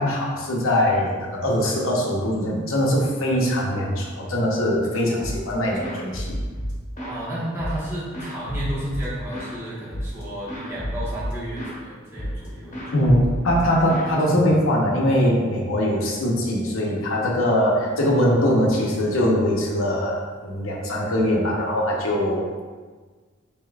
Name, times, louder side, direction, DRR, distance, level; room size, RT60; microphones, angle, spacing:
voice 1, 0.0-6.4 12.9-22.6, equal, 80° left, -2 dB, 0.9 m, -22 dB
sound 1, 5.2-5.5 5.8-7.2 7.6-9.6 9.9-10.2 10.5-11.8 12.2-12.5 12.7-14.8, equal, 35° left, 0.9 m, -31 dB
voice 2, 7.0-13.1 13.9-14.2, right 1 dB, 10° right, -9 dB, 1.3 m, -32 dB
6.7 x 3.0 x 2.3 m, 1.4 s
head